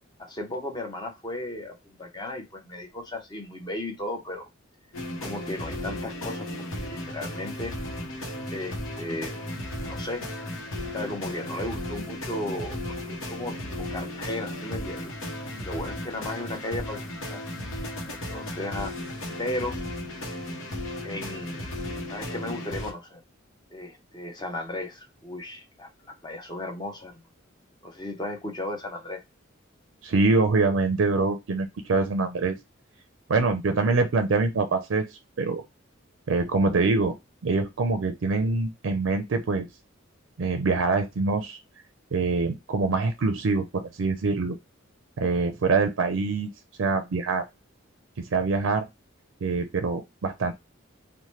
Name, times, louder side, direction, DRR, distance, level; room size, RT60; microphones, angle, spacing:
voice 1, 0.2-4.5 5.2-7.7 8.5-9.5 9.9-10.2 10.9-15.1 15.6-17.4 18.1-18.9 19.4-19.8 20.1-20.3 21.0-21.8 22.1-23.2 23.7-25.9 26.2-27.2 27.8-29.2, left 1 dB, 20° left, 3 dB, 0.7 m, -35 dB
sound 1, 4.9-22.9, left 1 dB, 80° left, 0.9 m, -35 dB
voice 2, 30.0-32.6 33.3-35.1 35.4-35.6 36.3-37.2 37.4-39.7 40.4-41.6 42.1-44.6 45.2-46.5 46.8-47.4 48.2-48.8 49.4-50.5, right 3 dB, 70° right, 6 dB, 0.4 m, -24 dB
2.8 x 2.1 x 3.1 m, 0.21 s
head